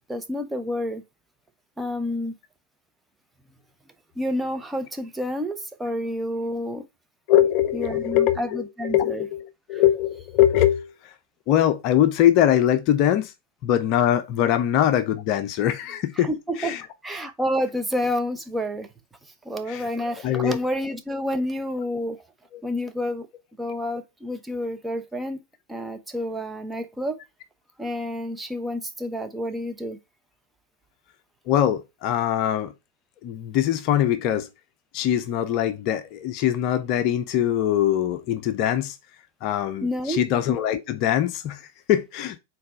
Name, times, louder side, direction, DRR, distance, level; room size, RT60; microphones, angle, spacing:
voice 1, 0.1-1.0 1.8-2.3 4.2-6.9 7.7-9.3 9.7-9.8 16.2-16.8 17.0-18.9 19.4-22.2 22.6-23.3 23.6-25.4 25.7-27.2 27.8-30.0 39.8-40.3, left 1 dB, 10° right, 0.9 m, -29 dB
voice 2, 7.3-11.1 11.5-13.3 13.6-16.3 16.6-16.8 19.7-20.6 22.5-22.6 23.7-23.8 31.5-32.7 33.2-34.5 34.9-39.0 39.4-42.4, left 11 dB, 40° left, 0.6 m, -22 dB
4.4 x 4.1 x 5.2 m
figure-of-eight pair, 90°, 0 cm